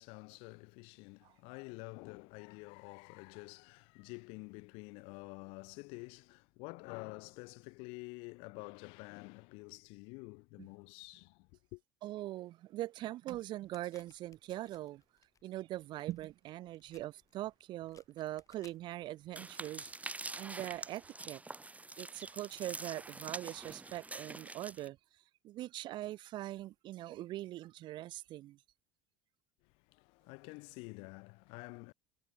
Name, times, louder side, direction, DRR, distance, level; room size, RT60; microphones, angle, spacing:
voice 1, 0.0-11.8 29.9-31.9, left 30 dB, 70° left, 1.0 m, -49 dB
voice 2, 12.0-15.0 15.4-21.4 22.0-25.0 25.4-28.6, right 15 dB, 50° right, 0.4 m, -42 dB
sound 1, 13.7-19.4, left 6 dB, 35° left, 5.7 m, -67 dB
sound 2, 19.4-24.9, right 3 dB, 15° right, 1.8 m, -45 dB
hypercardioid pair, 75°, 10 cm